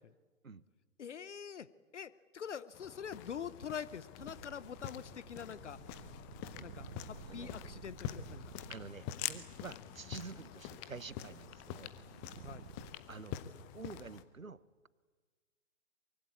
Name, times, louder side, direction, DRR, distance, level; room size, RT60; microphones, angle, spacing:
voice 1, 1.0-1.7 1.9-5.8 6.6-8.5 9.7-9.8 12.4-12.6, left 7 dB, 60° left, 18 dB, 0.9 m, -45 dB
sound 1, 2.7-14.2, left 11 dB, 15° left, 0.7 m, -46 dB
sound 2, 4.2-13.0, right 9 dB, 45° right, 0.9 m, -54 dB
voice 2, 8.7-11.9 13.1-13.4 13.7-14.6, right 4 dB, 90° right, 20 dB, 1.0 m, -48 dB
23.5 x 23.0 x 8.5 m, 1.4 s
figure-of-eight pair, 125°, 39 cm